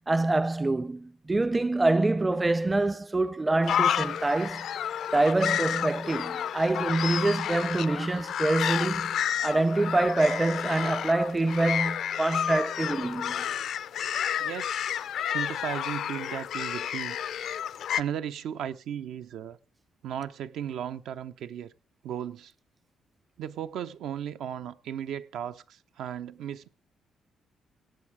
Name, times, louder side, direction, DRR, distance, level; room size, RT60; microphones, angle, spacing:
voice 1, 0.1-4.7 5.1-13.5, right 2 dB, 20° right, 0.5 m, -26 dB
sound 1, 3.6-18.0, left 9 dB, 70° left, 0.5 m, -31 dB
voice 2, 14.4-14.8 15.3-17.2 17.9-19.6 20.0-21.7 22.0-22.5 23.4-26.7, right 9 dB, 80° right, 0.7 m, -36 dB
17.5 x 7.8 x 4.8 m
cardioid pair, 90°, 0 cm